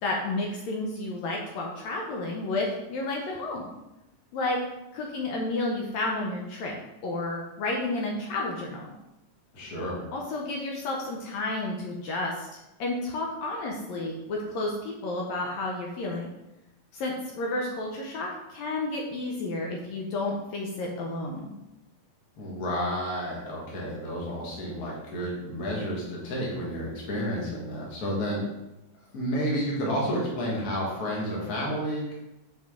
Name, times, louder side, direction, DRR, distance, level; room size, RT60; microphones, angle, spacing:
voice 1, 0.0-3.7 4.3-4.6 4.9-6.8 7.0-8.9 10.1-12.5 12.8-16.3 16.9-21.5, left 2 dB, 75° left, -1 dB, 2.0 m, -31 dB
voice 2, 9.5-10.0 22.4-28.4 29.1-32.1, equal, 40° left, -4 dB, 1.6 m, -31 dB
5.7 x 4.8 x 3.6 m, 0.93 s
omnidirectional pair, 3.4 m